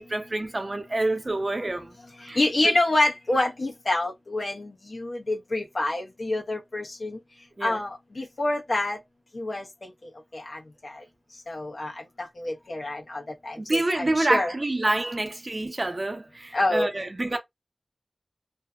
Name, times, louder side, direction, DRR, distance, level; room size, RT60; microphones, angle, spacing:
voice 1, 0.0-2.0 2.3-2.4 2.6-2.7 7.6-7.8 13.6-17.4, right 2 dB, 55° right, 0.7 m, -27 dB
voice 2, 2.3-7.2 7.6-9.0 9.3-9.6 10.3-11.0 11.5-11.9 12.2-14.5 16.5-16.9, left 2 dB, 85° left, 0.9 m, -27 dB
2.7 x 2.2 x 2.3 m
wide cardioid pair, 50°, 0 cm